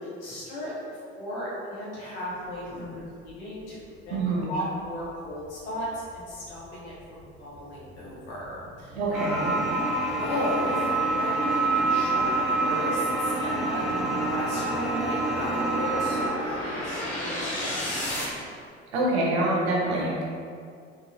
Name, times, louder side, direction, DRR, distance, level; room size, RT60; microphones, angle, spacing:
voice 1, 0.0-3.8 4.0-4.2 4.5-5.9 6.1-6.9 7.4-9.0 9.8-9.9 10.2-12.3 12.6-18.3, left 1 dB, 75° left, -8 dB, 1.2 m, -35 dB
voice 2, 4.1-4.5 9.0-9.6 18.9-20.2, right 2 dB, 70° right, -3 dB, 0.8 m, -26 dB
sound 1, 4.9-18.2, left 1 dB, 20° left, 1.4 m, -36 dB
sound 2, 9.1-16.3, right 2 dB, ahead, 0.7 m, -26 dB
3.8 x 2.4 x 2.7 m, 2.2 s
figure-of-eight pair, 60°, 35 cm